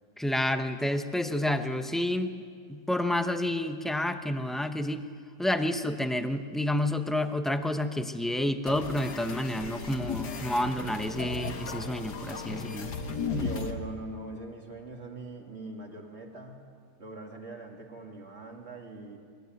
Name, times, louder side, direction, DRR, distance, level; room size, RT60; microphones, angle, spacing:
voice 1, 0.2-2.3 2.7-5.0 5.4-12.9, left 1 dB, ahead, 7 dB, 0.3 m, -29 dB
sound 1, 8.7-13.7, left 4 dB, 70° left, 2.0 m, -35 dB
voice 2, 13.3-16.6 17.0-19.2, right 2 dB, 40° right, 1 dB, 2.9 m, -42 dB
22.5 x 19.0 x 9.4 m, 2.1 s
omnidirectional pair, 1.8 m